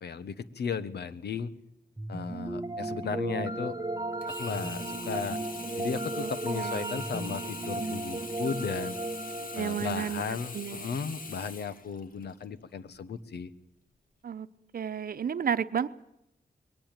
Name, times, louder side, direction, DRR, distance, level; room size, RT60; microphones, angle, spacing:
voice 1, 0.0-1.5 2.1-3.7 4.3-5.4 5.8-9.0 9.5-13.5, left 6 dB, 80° left, 14 dB, 1.2 m, -35 dB
sound 1, 2.0-11.1, right 2 dB, 20° right, 1.3 m, -35 dB
Sink (filling or washing), 4.2-12.4 13.0-13.1, left 4 dB, 55° left, 2.1 m, -43 dB
voice 2, 6.2-7.0 9.5-10.2 10.5-11.0 14.2-14.5 14.7-15.9, right 8 dB, 60° right, 12 dB, 1.0 m, -32 dB
22.0 x 18.5 x 9.1 m, 0.84 s
wide cardioid pair, 95°, 17 cm